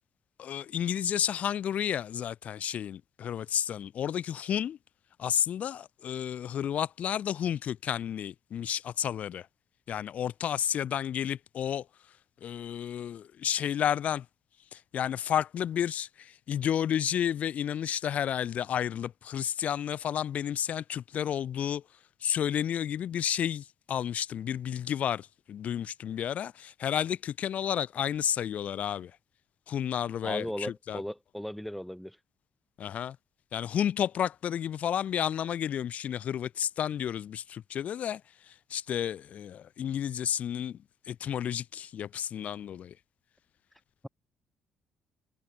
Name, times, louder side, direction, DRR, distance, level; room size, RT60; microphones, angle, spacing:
voice 1, 0.4-4.8 5.2-9.5 9.9-11.9 12.4-14.3 14.7-21.8 22.2-29.1 29.7-31.0 32.8-33.2 33.5-43.0, left 9 dB, 55° left, 2.0 m, -31 dB
voice 2, 30.2-32.2, equal, ahead, 1.6 m, -36 dB
hypercardioid pair, 45°, 3 cm